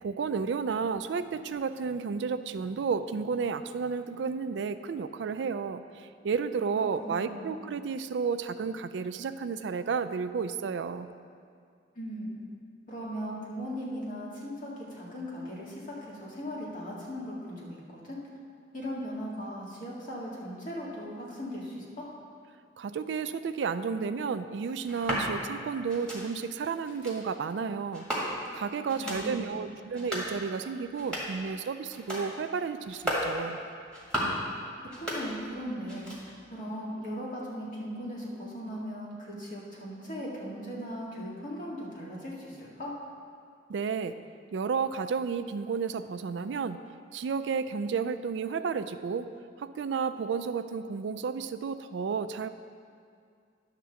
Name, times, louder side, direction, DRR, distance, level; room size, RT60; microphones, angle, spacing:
voice 1, 0.0-11.1 22.8-33.6 43.7-44.2 44.5-46.8 47.1-52.5, right 5 dB, 75° right, 11 dB, 0.4 m, -32 dB
voice 2, 7.0-7.6 11.9-12.3 12.9-18.2 18.7-22.0 28.9-29.8 35.0-42.9, equal, 50° left, -5 dB, 2.0 m, -38 dB
sound 1, 24.8-25.3 25.9-26.2 26.8-27.2 27.9-28.5 28.9-29.2 29.8-30.3 30.8-31.4 31.9-32.3 32.8-33.3 33.8-34.4 34.8-35.6 35.8-36.4, equal, 5° left, 1.8 m, -34 dB
10.5 x 3.7 x 6.9 m, 2.3 s
head